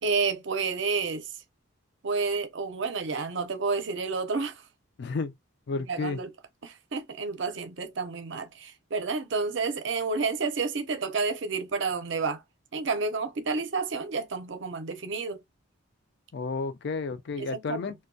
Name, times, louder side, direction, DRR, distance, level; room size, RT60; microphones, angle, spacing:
voice 1, 0.0-1.3 2.0-4.6 5.8-6.3 6.6-12.4 12.7-15.4 17.4-17.9, right 4 dB, 60° right, 0.6 m, -30 dB
voice 2, 5.0-5.3 5.7-6.2 16.3-17.9, left 4 dB, 55° left, 0.4 m, -32 dB
2.7 x 2.2 x 2.6 m
head